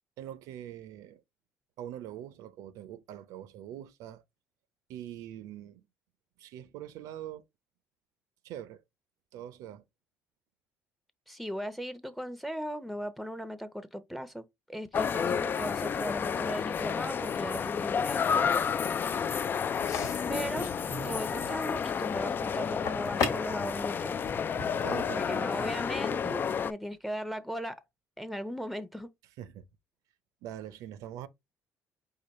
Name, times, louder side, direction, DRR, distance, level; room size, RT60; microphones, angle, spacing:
voice 1, 0.2-1.2 1.8-4.2 4.9-5.8 6.4-7.4 8.4-8.8 9.3-9.8 24.8-25.5 29.4-29.7 30.4-31.3, right 11 dB, 80° right, 0.6 m, -43 dB
voice 2, 11.3-14.4 14.7-18.5 20.3-20.7 21.0-24.2 25.1-27.8 28.2-29.1, equal, ahead, 0.7 m, -37 dB
sound 1, 14.9-26.7, left 7 dB, 35° left, 0.3 m, -31 dB
sound 2, 19.7-25.6, left 4 dB, 70° left, 1.5 m, -39 dB
4.9 x 2.2 x 4.1 m
cardioid pair, 105°, 6 cm